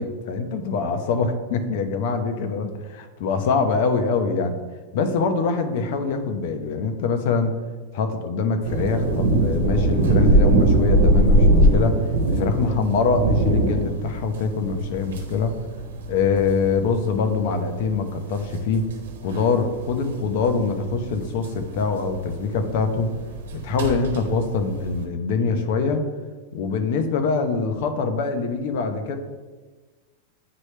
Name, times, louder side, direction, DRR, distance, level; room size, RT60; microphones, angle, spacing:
voice 1, 0.0-4.6 4.9-7.6 7.9-15.6 16.1-18.9 19.2-23.1 23.5-26.1 26.5-29.2, left 4 dB, 55° left, 7 dB, 0.8 m, -24 dB
sound 1, 8.6-25.0, right 1 dB, 85° right, 0.9 m, -22 dB
9.5 x 3.3 x 3.2 m, 1.3 s
supercardioid pair, 150°, 0 cm